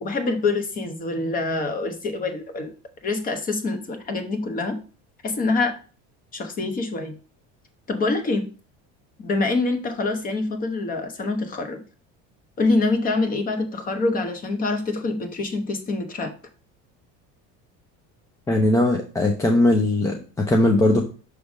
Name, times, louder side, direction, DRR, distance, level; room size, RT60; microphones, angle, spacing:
voice 1, 0.0-2.7 3.0-4.8 5.2-5.8 6.3-7.1 7.9-8.5 9.2-11.8 12.6-16.3, left 3 dB, 25° left, 7 dB, 0.9 m, -25 dB
voice 2, 18.5-21.0, left 1 dB, 10° left, 2 dB, 0.5 m, -19 dB
6.2 x 3.4 x 5.2 m, 0.37 s
cardioid pair, 155°, 34 cm